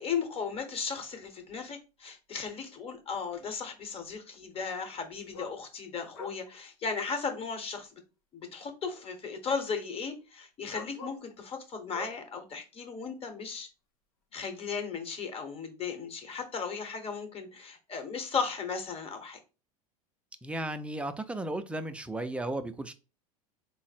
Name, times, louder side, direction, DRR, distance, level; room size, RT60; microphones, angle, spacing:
voice 1, 0.0-7.9 8.3-13.7 14.3-19.4, left 5 dB, 35° left, 1.1 m, -36 dB
sound 1, 2.5-2.6 5.3-5.6 6.1-6.4 7.6-7.7 9.5-9.6 10.7-11.3 11.9-12.2 14.3-14.4, left 2 dB, 80° left, 0.8 m, -44 dB
voice 2, 20.4-22.9, right 1 dB, 5° right, 0.4 m, -35 dB
3.8 x 2.0 x 4.1 m
hypercardioid pair, 90°, 18 cm